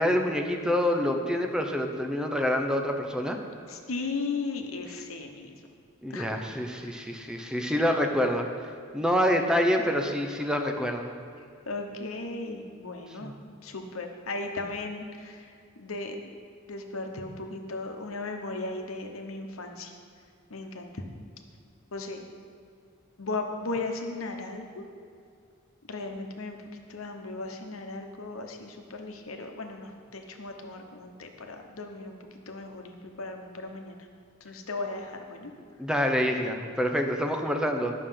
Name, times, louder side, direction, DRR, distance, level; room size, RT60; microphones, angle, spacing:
voice 1, 0.0-3.4 6.0-11.1 13.2-13.3 35.8-37.9, equal, 5° right, 3 dB, 0.7 m, -27 dB
voice 2, 3.7-5.6 6.1-6.3 11.7-13.3 13.6-15.5 15.8-16.2 16.7-19.9 20.5-21.0 21.9-22.2 23.2-24.8 25.9-26.6 26.9-32.2 32.5-33.9 34.4-35.5, left 3 dB, 85° left, 4 dB, 1.1 m, -36 dB
11.5 x 6.6 x 5.7 m, 2.3 s
head